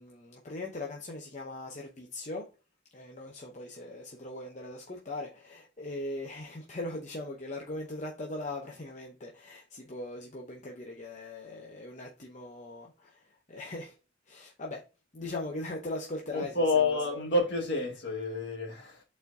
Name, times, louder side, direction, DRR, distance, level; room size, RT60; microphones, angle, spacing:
voice 1, 0.0-2.4 2.9-13.9 14.3-14.8 15.1-17.2, left 2 dB, 40° left, 0.7 m, -40 dB
voice 2, 16.3-19.0, left 3 dB, 60° left, 1.7 m, -29 dB
8.1 x 4.3 x 2.7 m
head